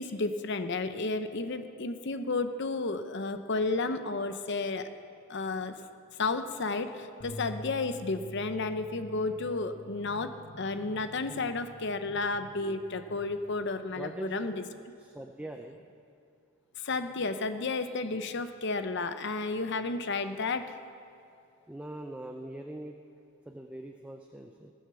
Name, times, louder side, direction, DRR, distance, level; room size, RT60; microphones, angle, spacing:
voice 1, 0.0-4.9 5.3-5.8 6.2-14.6 16.8-20.7, left 3 dB, 55° left, 9 dB, 0.7 m, -32 dB
sound 1, 7.2-13.5, equal, 35° left, 1.5 m, -48 dB
voice 2, 13.9-14.4 15.0-15.8 21.7-23.0 23.5-24.7, right 1 dB, 5° right, 4 dB, 0.4 m, -42 dB
17.0 x 6.4 x 6.9 m, 2.5 s
head